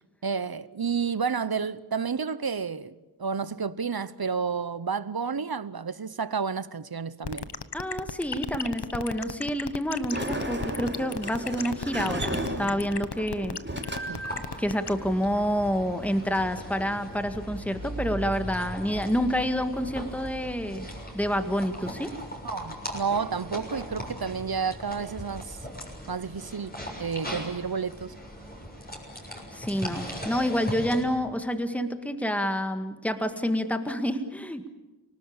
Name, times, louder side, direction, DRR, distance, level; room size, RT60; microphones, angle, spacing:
voice 1, 0.2-2.9 3.2-7.5 14.1-14.2 22.4-25.6 26.1-28.1, right 6 dB, 65° right, 0.9 m, -30 dB
sound 1, 7.2-14.9, left 5 dB, 80° left, 1.1 m, -34 dB
voice 2, 7.7-13.6 14.6-20.9 21.1-22.2 29.5-34.7, equal, 5° left, 1.8 m, -28 dB
Sliding door, 9.9-17.4, right 1 dB, 25° right, 5.5 m, -36 dB
sound 2, 14.2-31.0, equal, 25° left, 6.8 m, -39 dB
29.5 x 19.0 x 8.7 m
wide cardioid pair, 45°, 40 cm